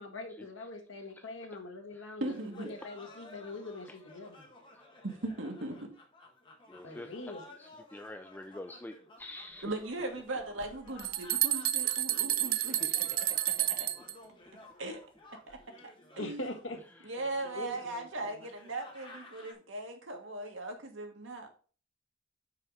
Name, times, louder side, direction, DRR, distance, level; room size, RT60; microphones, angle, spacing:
voice 1, 0.0-4.5 6.8-7.5 16.2-17.1 17.4-18.4, left 2 dB, 75° left, 3 dB, 1.5 m, -43 dB
sound 1, 2.2-19.5, left 2 dB, 25° left, 1.5 m, -55 dB
voice 2, 2.2-2.7 5.0-5.8 9.6-12.9 13.8-13.9 14.8-15.0 15.5-15.6 16.2-16.4 17.0-21.5, right 2 dB, 70° right, 3 dB, 1.7 m, -38 dB
voice 3, 6.7-7.3 7.6-9.7 12.8-12.9, left 1 dB, 10° left, 7 dB, 0.3 m, -46 dB
sound 2, 10.6-14.1, right 13 dB, 50° right, 0.5 m, -30 dB
5.6 x 5.4 x 4.8 m, 0.38 s
head